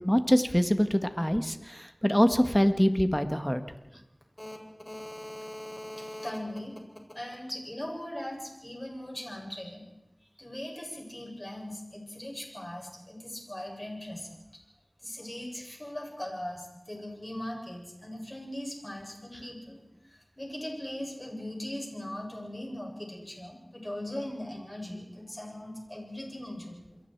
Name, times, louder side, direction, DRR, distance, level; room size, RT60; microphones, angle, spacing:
voice 1, 0.0-3.6, equal, 10° left, 8 dB, 1.7 m, -24 dB
voice 2, 4.8-6.8 7.1-9.8 10.4-14.4 15.0-27.0, left 1 dB, 25° left, 0 dB, 7.6 m, -39 dB
28.5 x 22.5 x 4.8 m, 0.93 s
wide cardioid pair, 45°, 0 cm